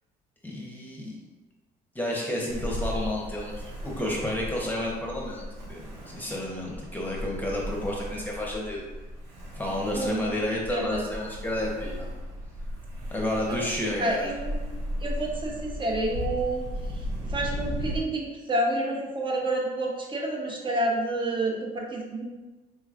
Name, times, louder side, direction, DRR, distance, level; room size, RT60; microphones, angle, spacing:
voice 1, 0.4-1.1 1.9-8.8 9.5-12.1 13.1-14.3, left 1 dB, 10° left, -3 dB, 0.9 m, -31 dB
Ocean, 2.5-18.0, equal, 75° right, 1.1 m, -36 dB
voice 2, 9.9-10.3 10.7-11.0 13.5-13.6 14.0-14.7 15.0-16.7 16.9-17.0 17.3-22.2, right 1 dB, 30° right, -1 dB, 0.9 m, -29 dB
4.2 x 3.0 x 2.5 m, 1.2 s
cardioid pair, 110°, 17 cm